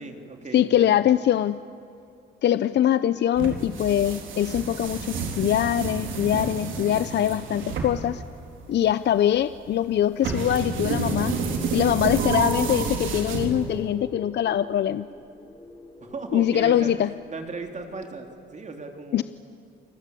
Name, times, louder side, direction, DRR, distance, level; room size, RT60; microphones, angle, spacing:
voice 1, 0.0-1.0 16.0-19.2, right 3 dB, 35° right, 4 dB, 3.4 m, -37 dB
voice 2, 0.5-1.6 2.4-8.2 8.7-11.3 11.7-15.1 16.3-17.1 19.1-19.2, left 11 dB, 60° left, 14 dB, 0.6 m, -23 dB
sound 1, 3.3-13.9, right 5 dB, 75° right, 4.1 m, -30 dB
sound 2, 9.9-18.0, left 1 dB, 10° left, 7.4 m, -43 dB
29.0 x 20.5 x 8.5 m, 2.7 s
cardioid pair, 90°, 20 cm